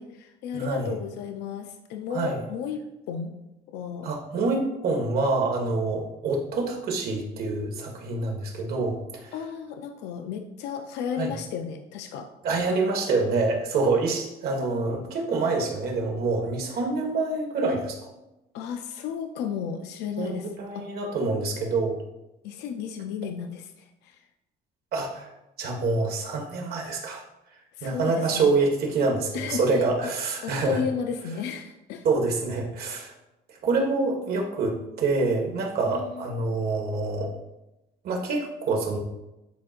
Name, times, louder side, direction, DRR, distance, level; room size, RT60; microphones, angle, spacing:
voice 1, 0.0-3.3 3.7-4.1 9.3-12.3 18.5-20.5 20.7-20.8 22.4-24.2 27.8-28.5 29.3-29.6 30.0-30.1 30.4-32.1 35.8-36.2, left 7 dB, 90° left, 6 dB, 0.5 m, -33 dB
voice 2, 0.5-0.9 2.1-2.4 4.0-9.3 11.2-11.3 12.4-18.1 20.2-22.0 24.9-25.3 25.6-27.2 27.8-30.8 32.0-33.1 33.6-37.3 38.0-39.0, right 3 dB, 65° right, 1 dB, 1.6 m, -26 dB
10.0 x 4.4 x 2.5 m, 0.93 s
cardioid pair, 110°, 17 cm